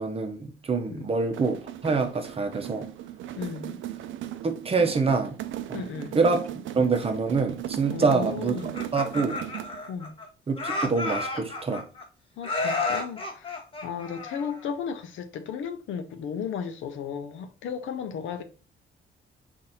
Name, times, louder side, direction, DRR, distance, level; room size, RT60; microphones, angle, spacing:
voice 1, 0.0-2.9 4.4-5.4 5.7-5.8 6.1-6.5 6.7-8.6 8.9-9.4 10.5-11.8, right 4 dB, 30° right, 0.7 m, -25 dB
sound 1, 1.2-9.9, right 12 dB, 75° right, 0.4 m, -37 dB
voice 2, 3.4-3.8 5.7-6.2 7.9-8.8 9.9-10.2 12.4-18.4, left 7 dB, 75° left, 0.6 m, -35 dB
Laughter, 8.6-10.2 10.6-12.0 12.4-14.7, left 3 dB, 25° left, 1.0 m, -32 dB
4.1 x 2.6 x 4.0 m
cardioid pair, 90°, 20 cm